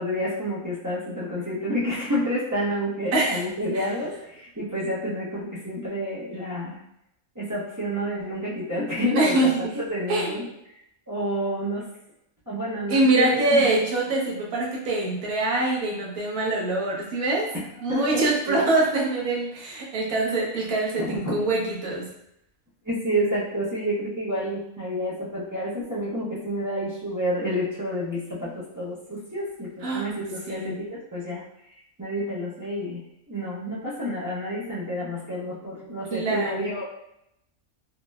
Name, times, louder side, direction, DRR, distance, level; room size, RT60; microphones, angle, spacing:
voice 1, 0.0-6.8 7.3-10.5 11.1-11.9 12.5-13.7 17.9-18.6 20.3-20.5 21.0-21.4 22.8-31.4 32.0-36.8, equal, 30° right, -9 dB, 0.3 m, -29 dB
voice 2, 3.1-3.4 3.7-3.8 9.1-9.6 10.1-10.4 12.9-17.5 17.8-22.1 29.8-30.1 30.5-30.8 36.1-36.7, right 2 dB, 80° right, -3 dB, 1.3 m, -24 dB
3.7 x 2.0 x 2.2 m, 0.78 s
omnidirectional pair, 1.5 m